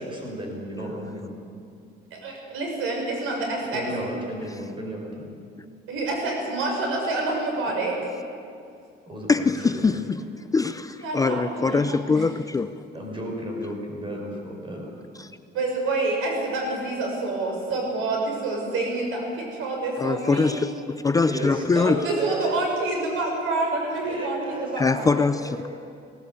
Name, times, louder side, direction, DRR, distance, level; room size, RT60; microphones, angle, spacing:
voice 1, 0.0-1.4 3.6-5.4 9.1-10.1 12.9-14.9 21.2-22.5 24.0-25.7, equal, 25° right, 0 dB, 5.2 m, -34 dB
voice 2, 2.1-3.8 5.9-8.0 11.0-12.3 15.5-20.7 22.0-25.3, right 2 dB, 85° right, 1 dB, 5.9 m, -27 dB
voice 3, 9.3-10.2 10.5-10.9 11.1-12.8 15.2-15.3 20.0-22.0 24.8-25.7, left 4 dB, 15° left, 11 dB, 0.4 m, -23 dB
18.0 x 18.0 x 8.2 m, 2.4 s
cardioid pair, 145°, 21 cm